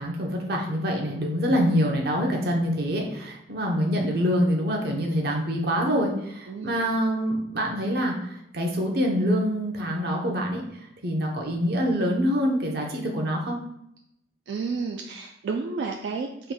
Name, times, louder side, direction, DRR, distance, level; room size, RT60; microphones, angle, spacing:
voice 1, 0.0-10.6 11.0-13.6, equal, 60° right, 0 dB, 0.7 m, -25 dB
voice 2, 6.5-6.8 14.5-16.5, right 4 dB, 80° right, 2 dB, 0.3 m, -31 dB
3.8 x 2.2 x 4.2 m, 0.79 s
head